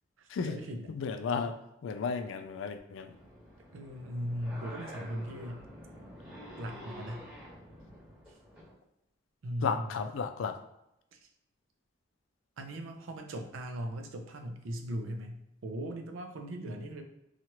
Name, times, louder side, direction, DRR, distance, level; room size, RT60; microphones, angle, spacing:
voice 1, 0.2-0.9 3.7-5.7 6.6-7.2 9.4-10.1 11.1-11.2 12.6-17.0, equal, 85° right, 4 dB, 0.5 m, -39 dB
voice 2, 0.9-1.6 1.8-3.1 9.6-10.6, left 5 dB, 75° left, 7 dB, 0.3 m, -33 dB
sound 1, 3.1-8.7, equal, 5° right, 1.3 m, -48 dB
2.9 x 2.4 x 2.9 m, 0.84 s
head